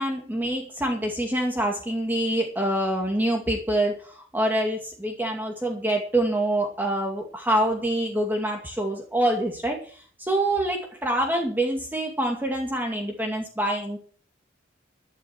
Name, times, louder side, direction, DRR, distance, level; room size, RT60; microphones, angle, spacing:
voice 1, 0.0-14.0, right 1 dB, 10° right, 1 dB, 2.2 m, -26 dB
12.5 x 11.5 x 6.1 m, 0.43 s
head